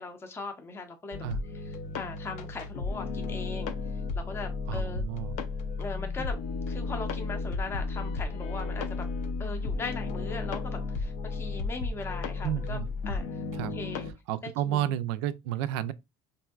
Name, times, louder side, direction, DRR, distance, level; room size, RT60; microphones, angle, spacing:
voice 1, 0.0-1.2 1.6-3.7 4.1-5.0 5.8-6.4 6.7-9.1 9.4-12.8 13.1-13.4 13.7-14.1 14.4-14.8, left 3 dB, 20° left, 0.5 m, -39 dB
sound 1, 1.1-14.1, left 3 dB, 70° left, 0.5 m, -33 dB
voice 2, 4.7-5.4 12.4-12.9 13.6-13.8 14.3-15.9, right 12 dB, 90° right, 0.4 m, -31 dB
3.3 x 2.6 x 2.3 m
cardioid pair, 120°, 13 cm